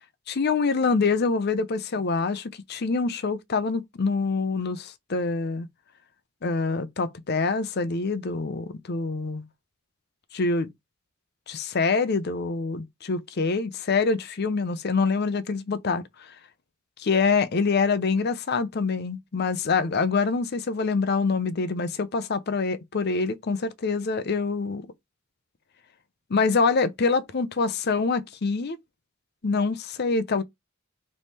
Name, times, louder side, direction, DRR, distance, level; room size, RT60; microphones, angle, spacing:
voice 1, 0.3-5.7 6.4-9.4 10.3-10.7 11.5-16.1 17.0-24.9 26.3-28.8 29.4-30.4, left 4 dB, 50° left, 0.5 m, -25 dB
3.5 x 3.1 x 4.1 m
head